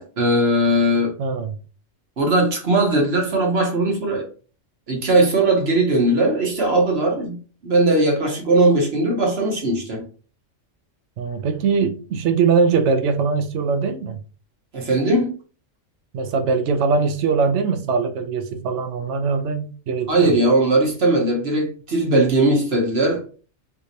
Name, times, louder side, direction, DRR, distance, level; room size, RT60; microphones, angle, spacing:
voice 1, 0.0-1.1 2.2-4.3 4.9-7.4 7.6-10.0 14.7-15.3 20.1-23.2, right 2 dB, 55° right, 1.2 m, -19 dB
voice 2, 1.2-1.5 11.2-14.2 16.1-20.3, right 5 dB, 70° right, 0.9 m, -21 dB
3.3 x 3.1 x 2.7 m
omnidirectional pair, 1.3 m